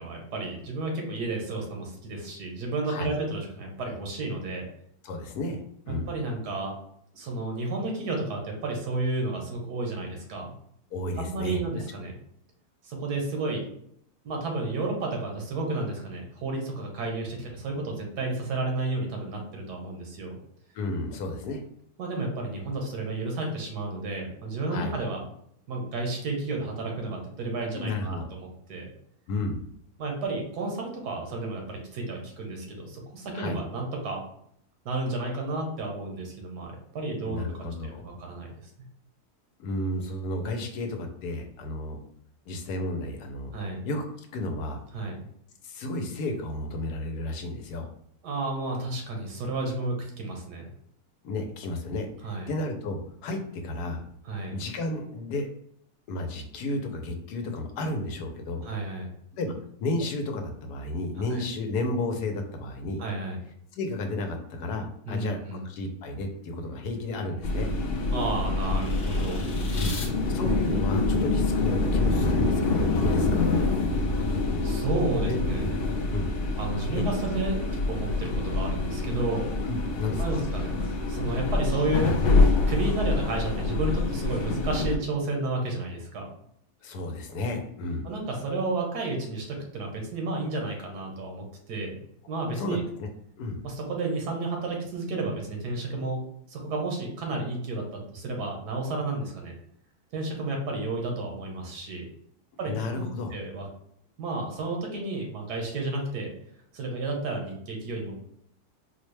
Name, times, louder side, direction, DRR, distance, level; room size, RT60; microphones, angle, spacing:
voice 1, 0.0-4.6 5.9-6.7 7.1-10.5 11.2-12.1 12.8-13.6 14.2-20.4 22.0-25.2 25.7-28.9 30.0-34.2 34.8-37.5 37.8-38.5 38.8-38.9 43.5-43.8 44.9-45.2 48.2-50.7 52.2-52.5 54.2-54.6 58.6-59.1 61.3-61.4 63.0-63.4 65.1-65.6 68.1-69.8 73.5-73.7 74.6-75.8 76.6-77.6 77.9-79.5 80.2-82.2 82.7-86.3 88.0-92.0 92.3-92.8 93.6-96.2 96.5-99.5 100.1-102.0 102.6-103.1 103.3-103.7 104.2-106.3 106.7-108.1, right 2 dB, 90° right, 1 dB, 1.5 m, -32 dB
voice 2, 5.0-6.1 10.9-11.6 20.7-21.6 24.7-25.0 27.7-28.3 29.3-29.6 33.3-33.6 37.2-38.1 39.6-42.0 42.5-43.5 43.8-44.8 45.6-47.9 51.2-54.0 54.5-55.5 56.1-58.7 59.3-59.5 59.8-63.0 63.7-67.7 69.8-70.0 70.3-73.5 75.2-75.4 76.1-76.3 76.9-77.0 79.6-80.4 86.8-88.1 92.6-93.1 93.4-93.6 102.6-103.3, left 2 dB, 90° left, 4 dB, 1.2 m, -32 dB
sound 1, 66.5-70.1, left 3 dB, 50° left, 0.9 m, -41 dB
sound 2, 67.4-85.0, left 3 dB, 70° left, 0.5 m, -26 dB
4.3 x 2.1 x 3.2 m, 0.69 s
omnidirectional pair, 1.7 m